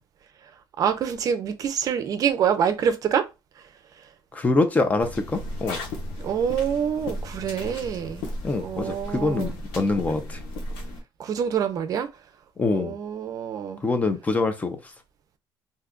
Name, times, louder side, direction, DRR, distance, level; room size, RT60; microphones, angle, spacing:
voice 1, 0.8-3.3 6.2-8.3 8.6-9.5 11.2-12.1 12.7-13.8, right 8 dB, 45° right, 0.5 m, -26 dB
voice 2, 4.3-5.8 8.4-10.4 12.6-13.0 13.8-14.9, left 3 dB, 20° left, 0.4 m, -25 dB
sound 1, 5.0-11.0, left 1 dB, 90° left, 0.9 m, -35 dB
2.7 x 2.3 x 3.6 m
cardioid pair, 140°, 8 cm